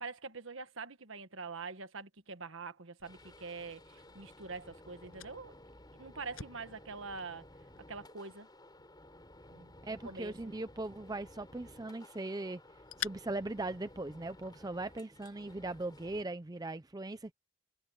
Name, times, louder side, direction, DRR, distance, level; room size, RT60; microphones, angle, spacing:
voice 1, 0.0-5.5 5.9-7.5 7.9-8.5 9.5-10.5, right 4 dB, 65° right, 1.5 m, -45 dB
Fire, 3.0-14.5, left 9 dB, 80° left, 7.9 m, -51 dB
sound 1, 3.0-16.2, left 1 dB, 20° left, 7.0 m, -56 dB
voice 2, 9.8-12.6 13.0-17.3, right 2 dB, 15° right, 0.5 m, -39 dB
head